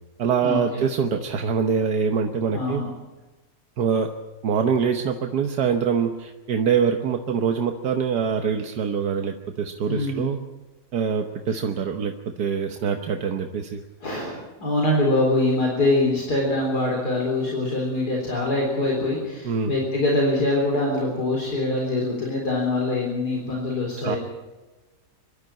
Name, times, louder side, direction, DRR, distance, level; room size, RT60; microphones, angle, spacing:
voice 1, 0.2-2.8 3.8-4.1 4.4-10.4 10.9-13.8 19.4-19.7 24.0-24.2, right 6 dB, 80° right, 5 dB, 1.6 m, -24 dB
voice 2, 2.5-2.9 9.9-10.3 14.0-24.2, left 2 dB, 75° left, -2 dB, 4.4 m, -24 dB
24.0 x 12.5 x 8.8 m, 1.1 s
omnidirectional pair, 1.7 m